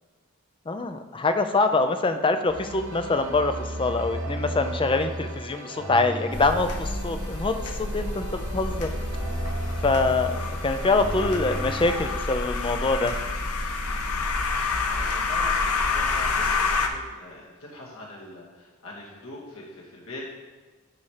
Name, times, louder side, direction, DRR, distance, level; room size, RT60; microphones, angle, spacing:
voice 1, 0.7-7.6 7.9-8.9 9.8-13.2, left 3 dB, 25° left, 8 dB, 0.4 m, -24 dB
sound 1, 2.5-12.1, right 1 dB, 60° right, 1.5 m, -34 dB
sound 2, 6.3-16.9, left 3 dB, 85° left, 0.8 m, -28 dB
voice 2, 14.9-20.2, left 1 dB, 65° left, -4 dB, 2.2 m, -43 dB
9.9 x 4.2 x 4.9 m, 1.3 s
head